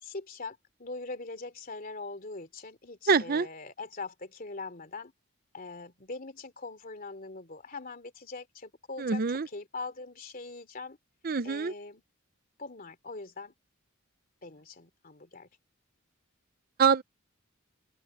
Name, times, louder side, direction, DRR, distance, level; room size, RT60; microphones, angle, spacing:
voice 1, 0.0-5.1 5.5-11.0 11.4-12.0 12.6-13.5 14.4-15.5, left 3 dB, 40° left, 3.2 m, -42 dB
voice 2, 3.1-3.5 9.0-9.5 11.2-11.7 16.8-17.0, right 5 dB, 45° right, 0.6 m, -25 dB
open air
head